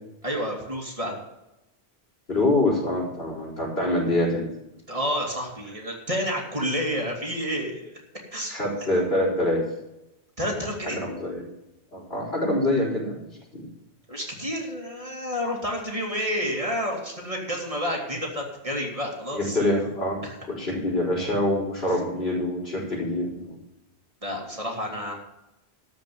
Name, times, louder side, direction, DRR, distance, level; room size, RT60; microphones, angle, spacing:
voice 1, 0.2-1.1 4.9-7.9 8.3-8.5 10.4-11.0 14.1-19.6 20.2-20.4 24.2-25.1, equal, 30° right, -1 dB, 2.7 m, -29 dB
voice 2, 2.3-4.5 8.5-9.6 10.9-11.4 11.9-13.2 13.5-13.6 19.3-20.2 20.6-23.6, left 1 dB, 70° left, -3 dB, 4.7 m, -25 dB
13.5 x 5.2 x 9.2 m, 0.91 s
omnidirectional pair, 1.1 m